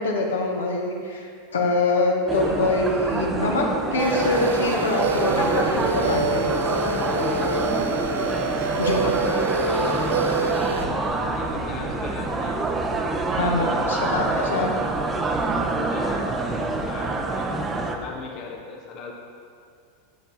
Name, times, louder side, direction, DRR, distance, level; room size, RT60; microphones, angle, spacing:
voice 1, 0.0-6.6 8.8-9.3 13.3-14.7, left 2 dB, 70° left, 0 dB, 1.0 m, -24 dB
sound 1, 2.3-18.0, right 2 dB, 20° right, 0.7 m, -26 dB
sound 2, 4.0-10.8, right 3 dB, 65° right, 0.5 m, -27 dB
sound 3, 5.8-16.8, right 2 dB, 85° right, 2.0 m, -41 dB
voice 2, 8.5-12.6 13.5-14.5 15.9-19.1, left 4 dB, 40° left, 0 dB, 0.8 m, -38 dB
6.8 x 6.6 x 4.0 m, 2.2 s
figure-of-eight pair, 85°, 0 cm